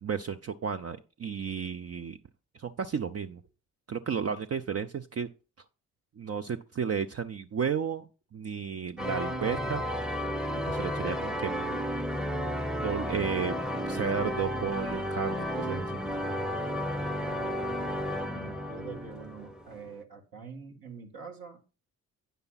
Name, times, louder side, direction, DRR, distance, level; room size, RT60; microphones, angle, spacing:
voice 1, 0.0-2.2 2.5-3.4 3.9-5.3 6.2-9.8 10.7-11.8 12.8-13.6 13.9-15.9, right 7 dB, 35° right, 8 dB, 0.7 m, -33 dB
sound 1, 9.0-20.0, equal, ahead, 0.9 m, -33 dB
voice 2, 17.1-21.6, right 5 dB, 60° right, 1 dB, 2.1 m, -45 dB
9.1 x 6.7 x 4.1 m, 0.33 s
hypercardioid pair, 40°, 40 cm